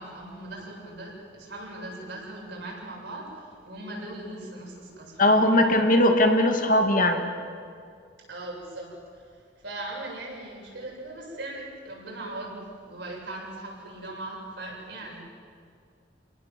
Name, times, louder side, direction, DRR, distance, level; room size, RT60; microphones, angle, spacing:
voice 1, 0.0-5.8 8.3-9.2 9.6-15.2, right 2 dB, 60° right, -2 dB, 7.7 m, -39 dB
voice 2, 5.2-7.3, left 1 dB, 45° left, 5 dB, 2.2 m, -20 dB
29.5 x 19.5 x 7.7 m, 2.3 s
head